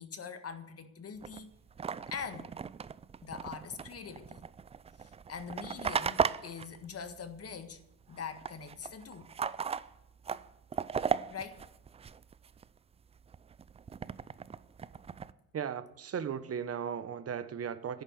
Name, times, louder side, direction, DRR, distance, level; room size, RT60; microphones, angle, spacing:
voice 1, 0.0-1.5 2.1-2.5 3.2-4.4 5.0-7.8 8.1-9.3 11.3-11.7, left 6 dB, 35° left, 1.6 m, -43 dB
sound 1, 1.2-7.8 8.0-12.6 13.1-15.3, right 6 dB, 15° right, 0.4 m, -37 dB
voice 2, 15.5-18.0, right 8 dB, 35° right, 1.2 m, -36 dB
11.0 x 8.9 x 9.5 m
hypercardioid pair, 60°, 44 cm